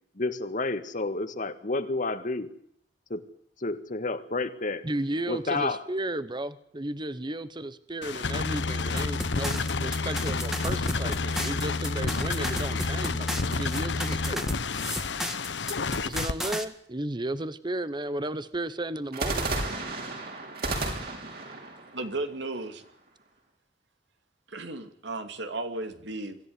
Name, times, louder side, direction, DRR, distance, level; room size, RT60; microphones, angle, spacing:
voice 1, 0.2-2.5 3.1-3.2 3.6-4.8 5.3-5.8, left 3 dB, 45° left, 10 dB, 1.7 m, -30 dB
voice 2, 4.8-14.5 16.0-19.5, right 1 dB, 25° right, 14 dB, 1.0 m, -34 dB
sound 1, 8.0-16.3, left 3 dB, 80° left, 1.1 m, -30 dB
sound 2, 9.0-16.7, equal, ahead, 1.9 m, -35 dB
sound 3, 10.9-12.4 19.1-23.1, right 2 dB, 60° right, 6.2 m, -34 dB
voice 3, 21.9-22.8 24.5-26.4, right 2 dB, 85° right, 7 dB, 2.7 m, -34 dB
25.0 x 14.0 x 9.7 m, 0.71 s
head